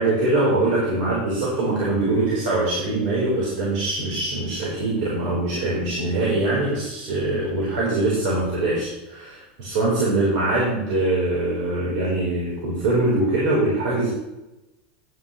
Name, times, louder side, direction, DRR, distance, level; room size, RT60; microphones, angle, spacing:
voice 1, 0.0-14.1, right 2 dB, 70° right, -6 dB, 4.5 m, -23 dB
12.5 x 10.0 x 3.3 m, 0.99 s
supercardioid pair, 135°, 5 cm